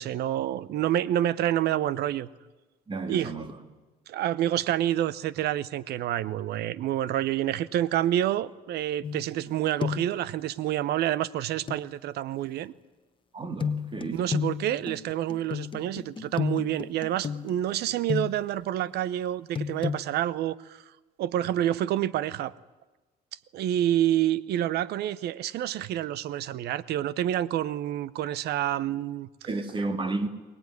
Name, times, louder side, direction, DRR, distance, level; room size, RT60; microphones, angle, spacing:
voice 1, 0.0-2.3 3.1-3.3 4.1-12.7 14.1-20.8 21.2-22.5 23.5-29.3, right 12 dB, 75° right, 0.9 m, -28 dB
voice 2, 2.9-3.6 13.3-14.3 29.4-30.3, right 3 dB, 30° right, 2.4 m, -32 dB
sound 1, 9.0-9.5 9.8-10.2 11.7-11.8 13.6-18.6 19.5-20.0, left 6 dB, 30° left, 1.3 m, -32 dB
22.5 x 19.0 x 9.7 m
cardioid pair, 110°, 17 cm